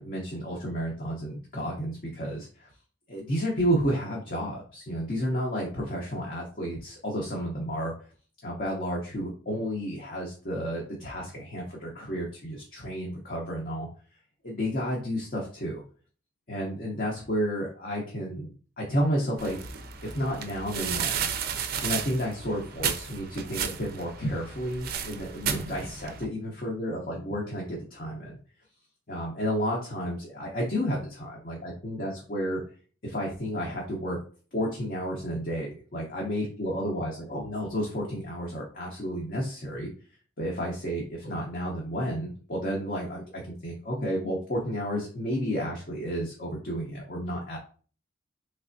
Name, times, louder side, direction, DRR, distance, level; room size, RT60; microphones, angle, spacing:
voice 1, 0.0-2.7 3.1-7.9 8.4-13.9 14.4-15.8 16.5-19.6 20.0-21.3 21.8-28.4 29.1-32.6 33.0-34.2 34.5-39.9 40.4-47.6, equal, 45° left, -2 dB, 0.7 m, -31 dB
sound 1, 19.4-26.3, right 7 dB, 50° right, 0.4 m, -33 dB
3.3 x 3.2 x 2.6 m, 0.41 s
head